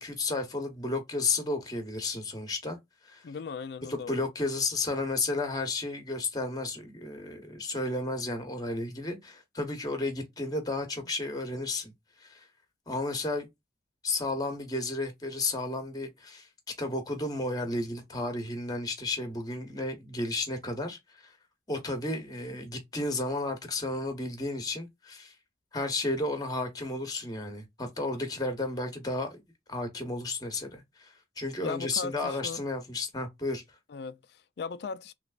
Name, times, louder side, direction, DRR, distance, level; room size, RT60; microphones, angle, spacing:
voice 1, 0.0-2.8 3.0-3.2 3.9-11.9 12.2-12.4 12.9-13.5 14.0-16.5 16.8-21.3 21.7-25.3 25.7-29.4 29.7-33.6, left 2 dB, 20° left, 0.9 m, -33 dB
voice 2, 3.2-4.2 31.6-32.6 33.9-35.1, left 5 dB, 65° left, 0.4 m, -38 dB
3.2 x 3.0 x 2.3 m
head